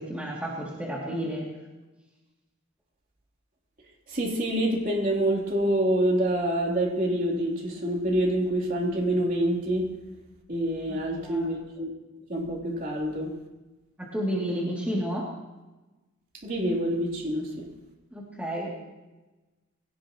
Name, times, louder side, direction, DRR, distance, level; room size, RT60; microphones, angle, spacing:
voice 1, 0.0-1.5 10.9-11.5 14.0-15.3 18.1-18.7, equal, 5° right, -5 dB, 2.8 m, -31 dB
voice 2, 4.1-9.9 10.5-11.9 12.3-13.3 16.4-17.7, right 1 dB, 40° right, -1 dB, 3.5 m, -26 dB
22.0 x 17.5 x 3.1 m, 1.1 s
head